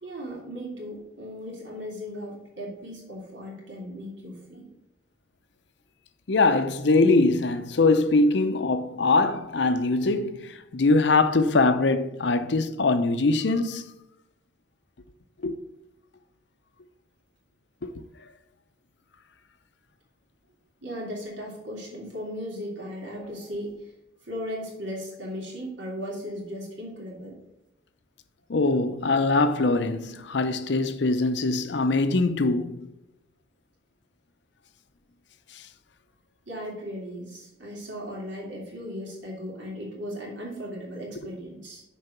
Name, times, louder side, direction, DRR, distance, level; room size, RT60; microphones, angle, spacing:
voice 1, 0.0-4.7 20.8-23.8 24.2-27.3 36.5-41.8, equal, 75° right, 3.0 m, -37 dB
voice 2, 6.3-13.9 15.4-15.5 17.8-17.9 28.5-32.9, left 3 dB, 65° left, 0.6 m, -22 dB
6.6 x 4.7 x 6.0 m
head